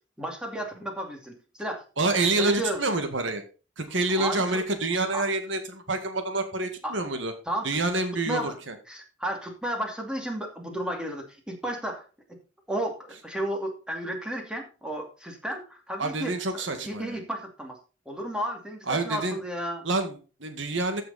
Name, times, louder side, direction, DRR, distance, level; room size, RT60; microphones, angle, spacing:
voice 1, 0.2-1.8 2.4-2.8 4.2-4.6 5.1-5.2 6.8-6.9 7.5-7.7 8.3-8.6 8.9-12.0 12.7-17.8 18.1-19.9, right 1 dB, 5° right, 2 dB, 2.5 m, -33 dB
voice 2, 2.0-3.4 3.8-7.3 7.6-8.8 16.0-17.2 18.9-19.4 19.8-21.0, right 2 dB, 80° right, 7 dB, 1.9 m, -27 dB
14.5 x 6.5 x 4.1 m, 0.34 s
head